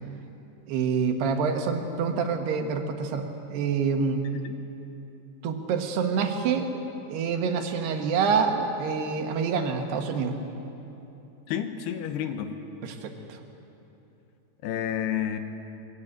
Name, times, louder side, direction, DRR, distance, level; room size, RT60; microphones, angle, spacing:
voice 1, 0.7-4.3 5.4-6.7 7.1-10.3 12.8-13.1, right 5 dB, 80° right, 5 dB, 3.4 m, -26 dB
voice 2, 11.5-12.5 14.6-15.4, left 10 dB, 85° left, 8 dB, 3.1 m, -30 dB
22.0 x 15.5 x 8.9 m, 2.9 s
omnidirectional pair, 4.7 m